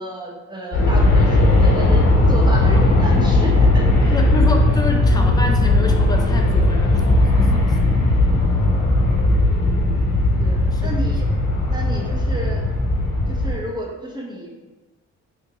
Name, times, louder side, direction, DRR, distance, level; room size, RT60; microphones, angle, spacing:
voice 1, 0.0-4.2 10.4-11.3 11.7-12.6 13.3-14.5, right 1 dB, 15° right, -2 dB, 0.7 m, -31 dB
Aircraft, 0.7-13.5, left 2 dB, 60° left, 1.0 m, -17 dB
voice 2, 4.1-7.8 10.7-10.9 11.3-11.4, left 2 dB, 15° left, 3 dB, 0.4 m, -28 dB
3.6 x 2.8 x 2.7 m, 1.2 s
cardioid pair, 90°, 30 cm